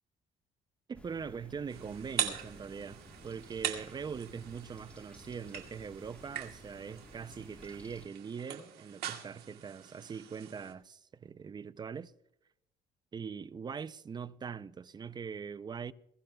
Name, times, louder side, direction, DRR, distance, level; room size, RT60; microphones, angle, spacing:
sound 1, 0.9-8.1, equal, 5° left, 1.3 m, -55 dB
voice 1, 0.9-12.1 13.1-15.9, right 6 dB, 25° right, 0.4 m, -42 dB
sound 2, 1.7-10.7, right 10 dB, 70° right, 1.9 m, -42 dB
21.0 x 16.5 x 2.3 m
cardioid pair, 110°, 17 cm